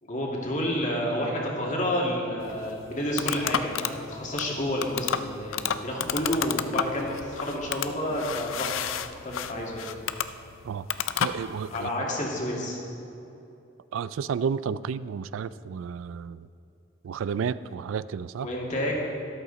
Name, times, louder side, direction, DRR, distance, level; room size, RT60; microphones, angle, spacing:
voice 1, 0.0-8.7 9.2-9.9 11.7-12.8 18.4-19.0, equal, 40° left, -2 dB, 2.2 m, -30 dB
sound 1, 2.4-11.9, left 8 dB, 80° left, 0.5 m, -32 dB
voice 2, 11.2-12.1 13.9-16.5 17.0-18.5, right 6 dB, 80° right, 16 dB, 0.3 m, -31 dB
13.0 x 12.0 x 4.0 m, 2.8 s
head